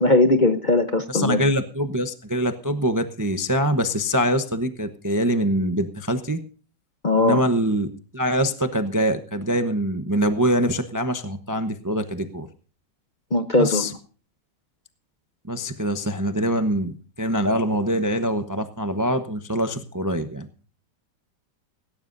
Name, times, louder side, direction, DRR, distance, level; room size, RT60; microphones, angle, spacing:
voice 1, 0.0-1.4 7.0-7.4 13.3-13.9, left 2 dB, 35° left, 8 dB, 0.9 m, -19 dB
voice 2, 1.1-6.4 7.2-7.9 8.1-12.5 13.6-13.9 15.5-20.5, equal, 15° right, 8 dB, 0.6 m, -24 dB
17.5 x 17.0 x 2.6 m, 0.39 s
omnidirectional pair, 1.9 m